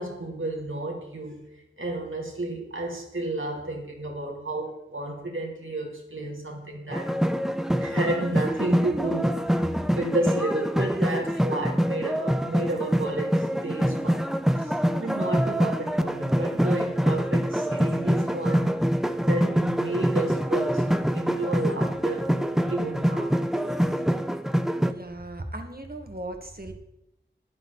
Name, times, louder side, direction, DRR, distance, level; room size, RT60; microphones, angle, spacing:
voice 1, 0.0-1.4 1.8-7.2 7.8-14.3 14.6-18.7 19.2-22.3 22.7-23.4, right 2 dB, 85° right, 0 dB, 3.0 m, -32 dB
sound 1, 6.9-24.9, equal, ahead, 0.9 m, -25 dB
voice 2, 24.8-26.7, right 1 dB, 50° right, 4 dB, 2.0 m, -37 dB
15.0 x 10.5 x 4.1 m, 0.85 s
wide cardioid pair, 45°, 20 cm